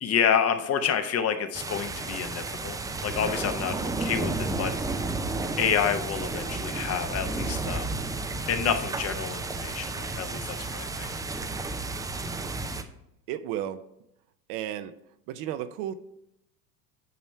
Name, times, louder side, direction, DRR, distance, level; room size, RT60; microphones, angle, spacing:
voice 1, 0.0-2.8 3.0-4.7 5.6-7.9 8.5-11.1, left 7 dB, 35° left, 8 dB, 0.8 m, -28 dB
sound 1, 1.5-12.8, right 3 dB, 10° right, 0.4 m, -32 dB
voice 2, 13.3-13.8 14.5-14.9 15.3-15.9, right 11 dB, 55° right, 11 dB, 0.7 m, -33 dB
9.4 x 3.1 x 5.6 m, 0.81 s
hypercardioid pair, 95°, 45 cm